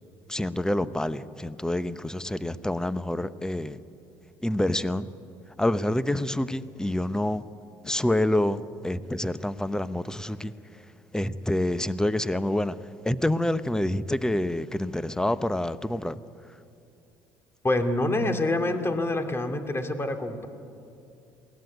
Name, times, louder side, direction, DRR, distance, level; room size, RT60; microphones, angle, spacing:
voice 1, 0.3-3.8 4.4-5.1 5.6-7.4 7.8-10.8 11.1-16.2, left 1 dB, 5° left, 14 dB, 0.9 m, -27 dB
voice 2, 17.6-20.5, left 2 dB, 25° left, 6 dB, 2.6 m, -26 dB
22.0 x 17.0 x 9.5 m, 2.6 s
hypercardioid pair, 65°, 10 cm